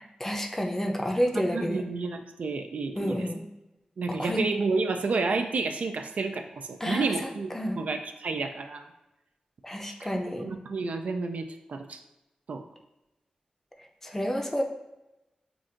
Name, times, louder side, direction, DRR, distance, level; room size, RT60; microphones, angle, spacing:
voice 1, 0.0-1.8 3.0-3.5 4.1-4.4 6.8-7.8 9.6-10.5 14.0-14.6, equal, 15° left, 2 dB, 0.5 m, -30 dB
voice 2, 1.3-3.2 4.0-7.5 7.8-8.9 10.3-12.0 12.5-12.6, right 4 dB, 70° right, 6 dB, 0.3 m, -30 dB
5.7 x 2.5 x 2.5 m, 0.96 s
cardioid pair, 65°, 2 cm